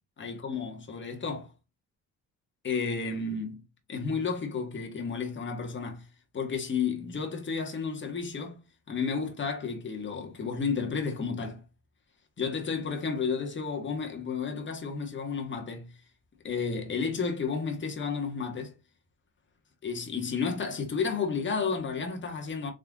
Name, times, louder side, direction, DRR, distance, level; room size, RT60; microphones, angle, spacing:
voice 1, 0.2-1.5 2.6-3.6 3.9-6.1 6.3-8.6 8.9-11.6 12.4-15.9 16.4-18.7 19.8-22.7, left 5 dB, 40° left, 1.5 m, -32 dB
3.9 x 3.2 x 3.5 m
cardioid pair, 90°, 30 cm